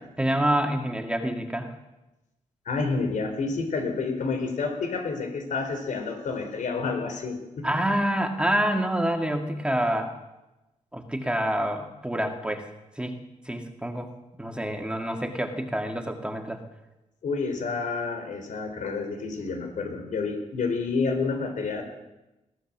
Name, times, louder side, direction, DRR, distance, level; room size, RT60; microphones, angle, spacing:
voice 1, 0.2-1.7 7.6-10.1 10.9-12.7 13.0-13.2 13.5-14.1 14.4-16.6, right 1 dB, 10° right, 4 dB, 2.3 m, -27 dB
voice 2, 2.7-7.7 17.2-21.8, left 4 dB, 85° left, 6 dB, 4.3 m, -29 dB
22.0 x 16.5 x 7.5 m, 0.98 s
wide cardioid pair, 135°, 13 cm